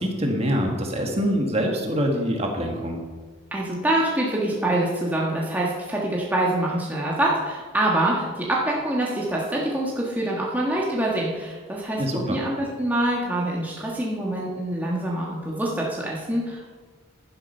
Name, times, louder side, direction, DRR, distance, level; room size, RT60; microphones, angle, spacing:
voice 1, 0.0-3.0 12.0-12.4, equal, 30° right, 1 dB, 1.8 m, -25 dB
voice 2, 3.5-16.7, right 1 dB, 10° right, -4 dB, 1.5 m, -25 dB
11.0 x 11.0 x 5.5 m, 1.4 s
head